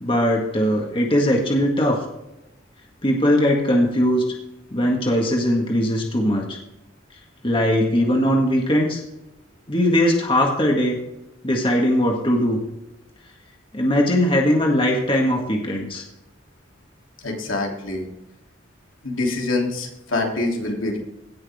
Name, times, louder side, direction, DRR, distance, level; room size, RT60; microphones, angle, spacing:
voice 1, 0.0-2.1 3.0-4.3 4.7-6.6 7.4-9.0 9.7-11.0 11.4-12.6 13.7-16.0, equal, 25° left, 0 dB, 1.8 m, -20 dB
voice 2, 17.2-18.1 19.0-21.0, left 2 dB, 85° left, -1 dB, 3.1 m, -25 dB
17.5 x 6.4 x 3.6 m, 0.90 s
head